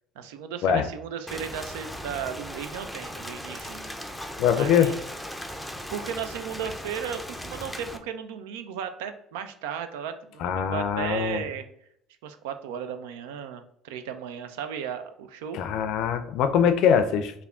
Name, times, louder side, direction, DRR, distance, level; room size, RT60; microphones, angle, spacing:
voice 1, 0.2-3.9 4.5-5.0 5.9-11.6 12.2-15.6, right 8 dB, 85° right, 8 dB, 0.4 m, -35 dB
Rain, 1.3-8.0, equal, 5° left, 0.5 m, -38 dB
voice 2, 4.4-4.9 10.4-11.4 15.5-17.3, left 8 dB, 70° left, 9 dB, 0.4 m, -23 dB
3.5 x 2.2 x 3.5 m, 0.71 s
supercardioid pair, 80°, 0 cm